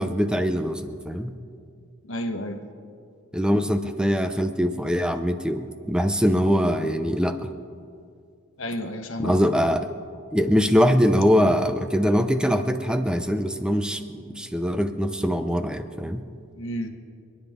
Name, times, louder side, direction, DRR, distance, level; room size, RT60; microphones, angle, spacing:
voice 1, 0.0-1.3 3.3-7.5 9.2-9.9 10.3-16.2, equal, 5° right, 8 dB, 0.6 m, -23 dB
voice 2, 2.0-2.6 8.6-9.4 16.6-16.9, equal, 65° left, 5 dB, 1.3 m, -31 dB
28.0 x 10.0 x 3.6 m, 2.3 s
head